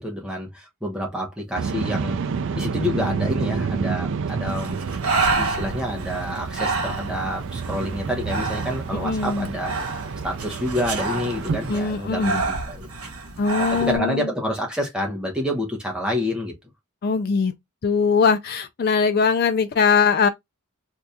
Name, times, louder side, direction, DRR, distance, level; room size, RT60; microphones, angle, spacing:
voice 1, 0.0-2.2 2.5-4.8 5.3-9.7 10.2-12.9 13.6-16.5, left 1 dB, 5° right, 0.9 m, -28 dB
sound 1, 1.6-11.8, right 5 dB, 55° right, 0.4 m, -29 dB
Breathing, 4.5-14.0, right 3 dB, 75° right, 1.0 m, -29 dB
voice 2, 8.9-9.5 11.7-12.4 13.4-14.3 17.0-17.5 17.8-20.3, left 5 dB, 45° left, 0.4 m, -21 dB
2.8 x 2.4 x 3.4 m
head